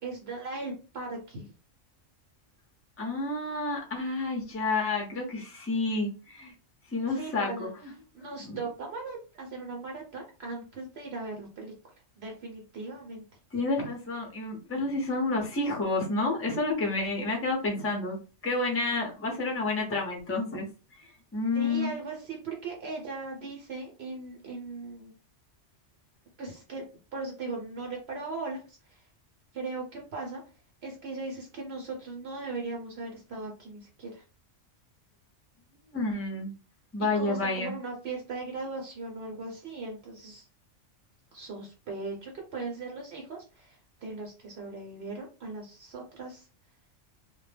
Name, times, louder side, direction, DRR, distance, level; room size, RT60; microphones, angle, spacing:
voice 1, 0.0-1.5 7.1-7.7 8.1-11.7 12.2-13.2 21.5-25.1 26.4-26.8 27.1-29.0 29.5-30.4 30.8-34.2 37.0-40.4 41.3-46.5, right 3 dB, 65° right, 0 dB, 0.8 m, -38 dB
voice 2, 3.0-6.5 6.9-7.7 8.4-8.6 13.5-18.2 18.4-20.7 21.0-22.0 35.9-36.5 36.9-37.7, left 3 dB, 20° left, 0 dB, 0.4 m, -30 dB
2.2 x 2.0 x 3.2 m, 0.34 s
omnidirectional pair, 1.3 m